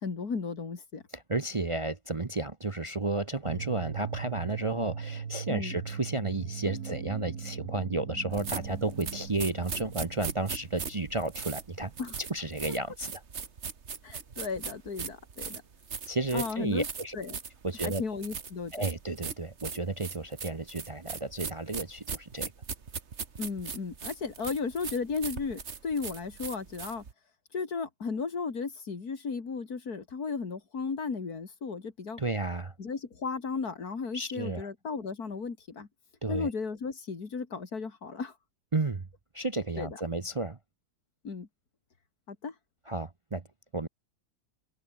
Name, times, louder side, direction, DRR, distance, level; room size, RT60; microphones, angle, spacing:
voice 1, 0.0-1.0 5.5-5.8 12.0-12.2 14.0-15.6 16.3-16.9 17.1-17.4 17.8-18.7 23.4-27.0 27.5-32.2 32.8-35.9 36.3-38.3 39.8-39.9 41.2-41.5 42.3-42.5, left 5 dB, 85° left, 3.0 m, -35 dB
voice 2, 1.1-11.9 12.3-13.2 16.1-17.2 17.6-18.0 18.7-22.5 32.2-32.7 34.1-34.7 36.2-36.5 38.7-39.1 39.3-40.6 42.9-43.4 43.7-43.9, right 2 dB, 25° right, 0.7 m, -32 dB
sound 1, 3.4-12.2, right 6 dB, 80° right, 2.3 m, -40 dB
sound 2, 8.3-27.1, right 6 dB, 50° right, 1.7 m, -39 dB
open air
omnidirectional pair, 1.6 m